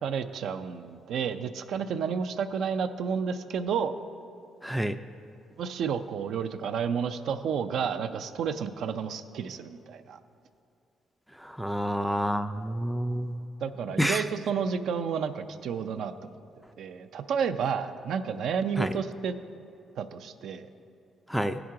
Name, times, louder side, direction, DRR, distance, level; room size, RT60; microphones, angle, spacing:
voice 1, 0.0-3.9 5.6-10.2 13.6-16.3 16.8-19.3 20.0-20.7, right 7 dB, 70° right, 8 dB, 0.4 m, -31 dB
voice 2, 4.6-5.0 11.4-13.4 14.0-14.2 18.8-18.9 21.3-21.6, equal, ahead, 8 dB, 0.3 m, -28 dB
15.0 x 5.9 x 3.7 m, 2.6 s
cardioid pair, 90°, 0 cm